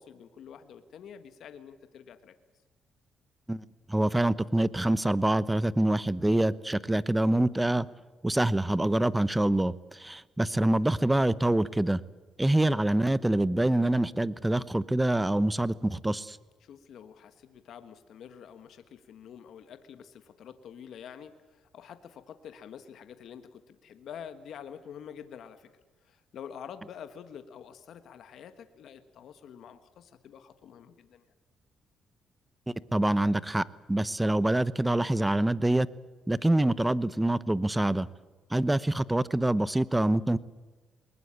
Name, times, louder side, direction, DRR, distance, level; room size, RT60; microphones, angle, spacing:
voice 1, 0.0-2.3 16.6-25.7 26.0-31.3, left 8 dB, 70° left, 10 dB, 1.4 m, -47 dB
voice 2, 3.5-7.9 8.2-12.0 12.4-16.4 32.7-35.9 36.3-38.1 38.5-40.4, right 1 dB, 10° right, 18 dB, 0.9 m, -26 dB
21.0 x 19.5 x 8.6 m, 1.3 s
cardioid pair, 90°, 0 cm